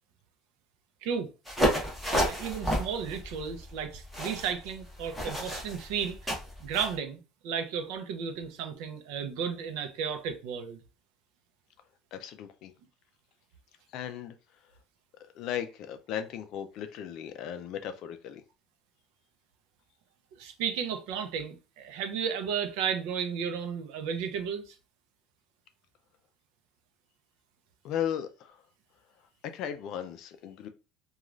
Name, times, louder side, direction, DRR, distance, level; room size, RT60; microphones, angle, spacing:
sound 1, 1.5-6.9, equal, ahead, 1.0 m, -31 dB
voice 1, 2.1-10.8 20.4-24.8, right 7 dB, 75° right, 0.5 m, -34 dB
voice 2, 12.1-12.7 13.9-14.3 15.3-18.4 27.8-28.6 29.4-30.7, left 9 dB, 50° left, 0.3 m, -36 dB
3.0 x 2.3 x 2.4 m
cardioid pair, 155°, 0 cm